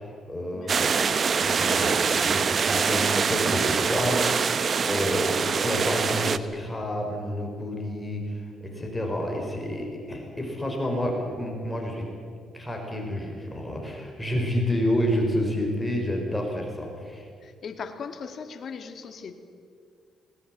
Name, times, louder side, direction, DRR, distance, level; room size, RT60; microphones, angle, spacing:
voice 1, 0.0-8.5 8.8-12.0 12.5-17.3, left 1 dB, 10° left, 1 dB, 5.4 m, -29 dB
sound 1, 0.7-6.4, right 5 dB, 45° right, 0.9 m, -24 dB
voice 2, 17.4-19.3, left 6 dB, 55° left, 7 dB, 2.2 m, -39 dB
20.0 x 19.5 x 9.3 m, 2.2 s
cardioid pair, 90°, 0 cm